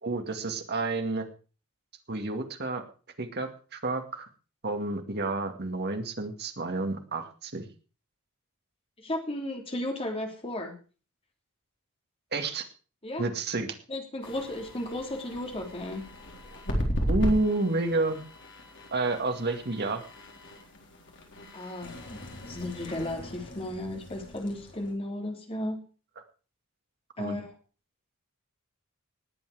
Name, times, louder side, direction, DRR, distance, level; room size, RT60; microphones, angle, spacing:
voice 1, 0.0-1.3 2.1-2.8 3.2-4.2 4.6-7.6 12.3-12.6 13.2-13.7 17.1-18.2 18.9-20.0 27.2-27.4, right 2 dB, 50° right, 5 dB, 2.2 m, -30 dB
voice 2, 9.0-10.8 13.0-13.3 13.9-16.1 21.5-22.2 22.4-25.8 27.2-27.5, left 1 dB, 25° left, 2 dB, 3.2 m, -34 dB
sound 1, 14.2-24.9, equal, 55° left, 4.0 m, -36 dB
19.5 x 8.6 x 5.0 m, 0.37 s
head